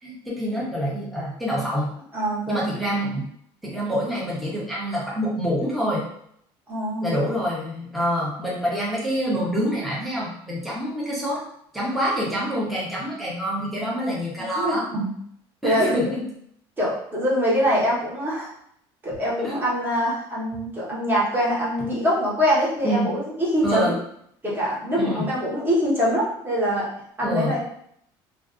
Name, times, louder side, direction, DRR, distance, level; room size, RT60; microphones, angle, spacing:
voice 1, 0.0-1.9 2.5-3.2 3.6-6.0 7.0-11.4 11.7-14.9 15.6-16.3 19.4-19.7 22.8-23.1 23.6-24.0 25.0-25.3 27.2-27.6, equal, ahead, -6 dB, 0.6 m, -26 dB
voice 2, 2.1-2.6 6.7-7.1 14.6-15.1 15.6-15.9 16.8-18.5 19.0-23.9 24.4-26.9 27.2-27.6, equal, 20° right, -6 dB, 1.0 m, -24 dB
2.4 x 2.3 x 2.4 m, 0.69 s
cardioid pair, 135°, 11 cm